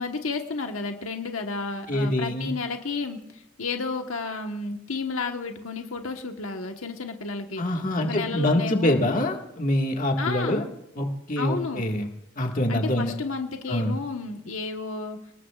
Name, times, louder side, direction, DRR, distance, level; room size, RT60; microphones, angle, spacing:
voice 1, 0.0-7.6 8.0-9.1 10.2-10.7 11.4-11.8 12.7-15.2, left 4 dB, 85° left, 4 dB, 1.3 m, -32 dB
voice 2, 1.9-2.5 7.6-10.6 11.0-12.1 12.4-13.1 13.7-14.0, left 1 dB, 40° left, 2 dB, 1.9 m, -25 dB
29.0 x 19.0 x 2.5 m, 0.78 s
head